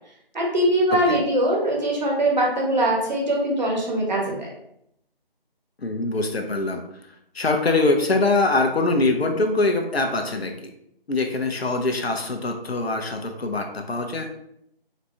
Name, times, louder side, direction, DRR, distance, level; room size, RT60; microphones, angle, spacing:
voice 1, 0.3-4.5, right 1 dB, 45° right, -1 dB, 1.2 m, -22 dB
voice 2, 5.8-6.8 7.3-10.5 11.1-14.3, left 2 dB, 85° left, 4 dB, 0.7 m, -23 dB
4.1 x 2.7 x 3.3 m, 0.75 s
figure-of-eight pair, 160°, 30 cm